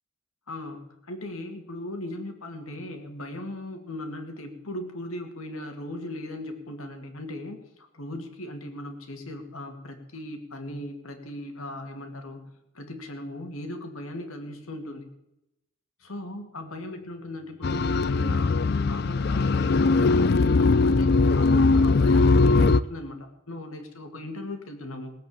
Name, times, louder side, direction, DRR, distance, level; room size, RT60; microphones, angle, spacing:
voice 1, 0.5-12.4 12.7-15.1 16.0-18.6 18.9-25.1, left 1 dB, 80° left, 5 dB, 2.3 m, -38 dB
sound 1, 17.6-22.8, left 3 dB, 50° left, 0.4 m, -20 dB
18.0 x 8.1 x 7.1 m, 0.85 s
head